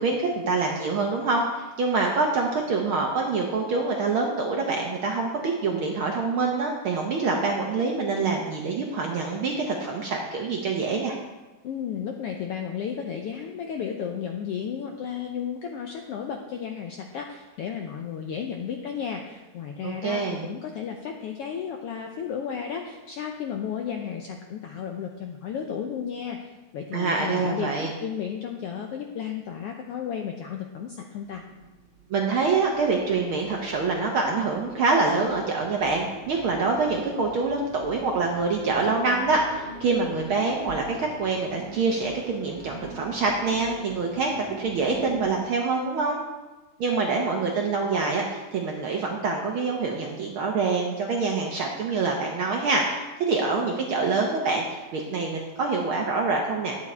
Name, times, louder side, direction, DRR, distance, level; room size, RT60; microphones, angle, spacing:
voice 1, 0.0-11.2 19.8-20.5 26.9-27.9 32.1-46.2 46.8-56.8, right 4 dB, 65° right, 0 dB, 1.3 m, -25 dB
voice 2, 11.6-27.7 28.0-31.4, left 8 dB, 80° left, 3 dB, 1.3 m, -33 dB
sound 1, 31.2-45.4, right 5 dB, 45° right, 2.3 m, -44 dB
10.5 x 8.7 x 4.3 m, 1.2 s
omnidirectional pair, 3.4 m